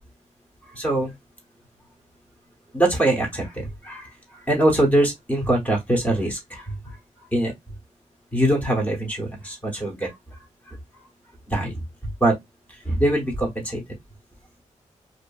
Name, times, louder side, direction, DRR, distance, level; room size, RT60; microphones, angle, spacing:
voice 1, 0.7-1.1 2.7-7.0 7.3-7.5 8.3-10.1 10.7-10.8 11.5-11.7 12.2-12.4 12.8-13.8, right 1 dB, 10° left, 0.9 m, -23 dB
2.6 x 2.5 x 2.3 m
wide cardioid pair, 130°, 13 cm